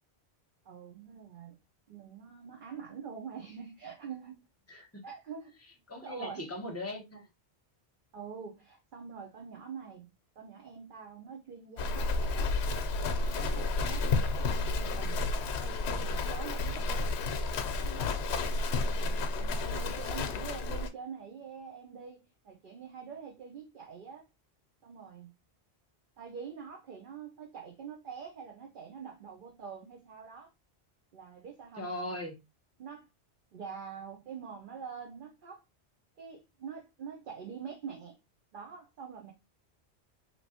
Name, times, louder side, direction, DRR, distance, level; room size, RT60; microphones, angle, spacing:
voice 1, 0.6-1.6 1.9-4.4 5.0-5.6 6.0-6.4 8.1-12.5 13.1-15.2 15.6-17.2 17.8-24.3 24.8-25.3 26.2-30.5 31.1-31.9 32.8-33.1 33.5-35.6 36.2-38.2 38.5-39.3, right 6 dB, 55° right, 0.7 m, -45 dB
voice 2, 4.7-5.0 5.9-7.3 31.8-32.4, left 1 dB, 15° left, 0.7 m, -39 dB
Livestock farm animals working animals, 11.8-20.9, left 3 dB, 80° left, 0.8 m, -31 dB
3.0 x 2.9 x 2.7 m
omnidirectional pair, 1.1 m